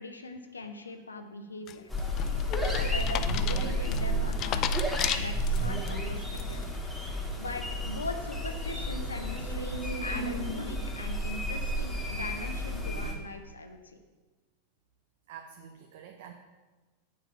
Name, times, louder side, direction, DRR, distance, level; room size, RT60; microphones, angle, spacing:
voice 1, 0.0-1.9 2.6-4.8 5.1-6.2 6.5-6.6 7.4-14.0, left 2 dB, 75° left, 6 dB, 0.8 m, -40 dB
sound 1, 1.7-5.9 6.3-6.8, left 11 dB, 35° left, 0.4 m, -35 dB
sound 2, 1.9-13.1, equal, 5° left, 1.7 m, -31 dB
voice 2, 11.8-12.2 15.3-16.3, right 8 dB, 55° right, 4 dB, 0.6 m, -50 dB
7.8 x 5.4 x 5.6 m, 1.3 s
figure-of-eight pair, 90°, 0 cm